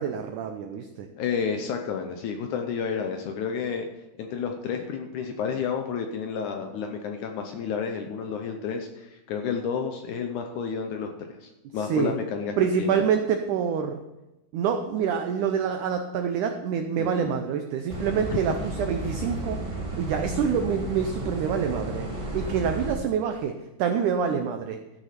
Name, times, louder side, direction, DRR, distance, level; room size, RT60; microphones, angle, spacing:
voice 1, 0.0-1.1 11.8-12.1 12.6-14.0 14.5-19.6 20.0-22.1 22.3-23.5 23.8-24.8, right 7 dB, 90° right, 6 dB, 1.7 m, -26 dB
voice 2, 1.2-3.9 4.2-11.1 11.4-13.0 17.0-17.3 18.3-18.4, left 6 dB, 80° left, 4 dB, 1.8 m, -31 dB
sound 1, 17.9-22.9, right 1 dB, 30° right, 0.5 m, -33 dB
14.0 x 6.3 x 5.8 m, 0.97 s
omnidirectional pair, 4.5 m